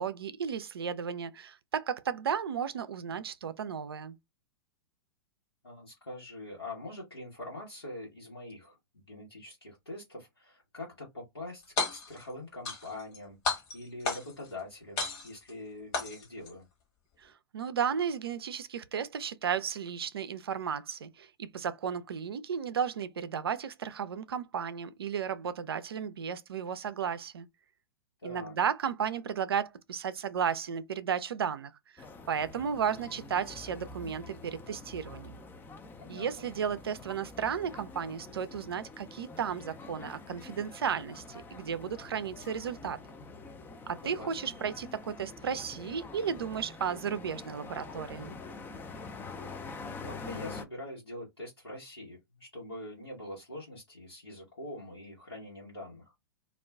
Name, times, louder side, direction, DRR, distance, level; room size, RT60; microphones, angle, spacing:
voice 1, 0.0-4.2 17.2-27.5 28.2-35.4 36.1-43.0 43.9-48.4, right 7 dB, 75° right, 0.4 m, -34 dB
voice 2, 5.6-16.7 28.2-28.5 36.0-36.3 44.0-44.5 50.0-56.1, left 1 dB, 90° left, 1.1 m, -44 dB
sound 1, 11.6-12.2 12.6-13.2 13.4-14.5 15.0-15.5 15.9-16.5, left 4 dB, 40° left, 1.2 m, -33 dB
sound 2, 32.0-50.6, left 3 dB, 15° left, 0.4 m, -46 dB
2.4 x 2.2 x 3.3 m
figure-of-eight pair, 100°, 13 cm